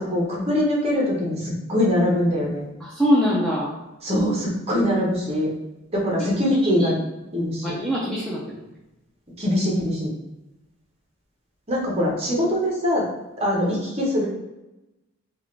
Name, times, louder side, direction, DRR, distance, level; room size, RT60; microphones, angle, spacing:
voice 1, 0.0-1.4 1.7-2.7 4.0-5.5 5.9-6.9 7.3-7.8 9.4-10.1 11.7-13.0 13.4-14.3, left 1 dB, 30° right, -3 dB, 0.9 m, -22 dB
voice 2, 2.8-3.8 6.3-6.9 7.6-8.7, equal, 5° left, -6 dB, 0.5 m, -24 dB
3.5 x 2.4 x 3.2 m, 0.98 s
head